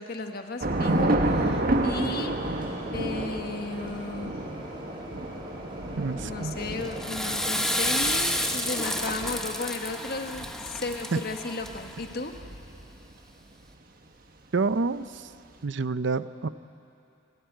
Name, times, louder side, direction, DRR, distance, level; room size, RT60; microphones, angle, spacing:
voice 1, 0.0-2.3 2.9-4.4 6.1-12.3, left 3 dB, 50° left, 5 dB, 1.3 m, -35 dB
Thunder / Rain, 0.6-13.1, right 1 dB, 50° right, 1.4 m, -31 dB
sound 1, 0.7-9.5, right 1 dB, 25° right, 5.2 m, -41 dB
voice 2, 6.0-6.6 11.1-11.2 14.5-15.1 15.6-16.5, right 4 dB, 65° right, 14 dB, 0.6 m, -27 dB
Water / Toilet flush, 6.8-12.0, left 1 dB, 5° left, 1.0 m, -30 dB
28.5 x 13.5 x 9.3 m, 2.7 s
head